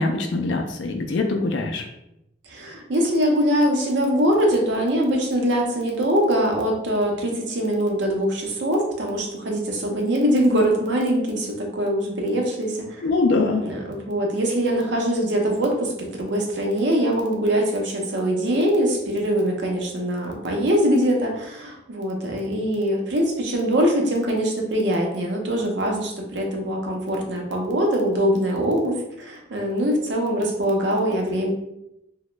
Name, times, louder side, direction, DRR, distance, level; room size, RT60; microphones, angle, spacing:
voice 1, 0.0-1.8 13.0-13.6, left 3 dB, 65° left, 3 dB, 0.3 m, -23 dB
voice 2, 2.5-13.0 13.6-31.5, equal, 65° right, 1 dB, 0.6 m, -23 dB
2.9 x 2.1 x 3.2 m, 0.86 s
head